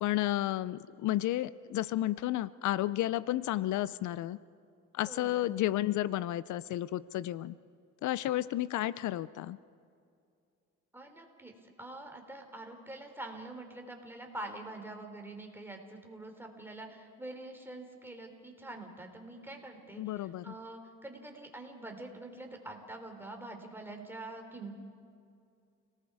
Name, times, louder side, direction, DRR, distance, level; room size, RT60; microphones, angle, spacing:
voice 1, 0.0-4.4 4.9-7.6 8.0-9.6 20.0-20.6, left 14 dB, 75° left, 18 dB, 0.5 m, -32 dB
voice 2, 5.1-5.5 10.9-24.8, right 2 dB, 5° right, 3 dB, 3.4 m, -45 dB
30.0 x 18.5 x 4.8 m, 2.4 s
cardioid pair, 90°, 30 cm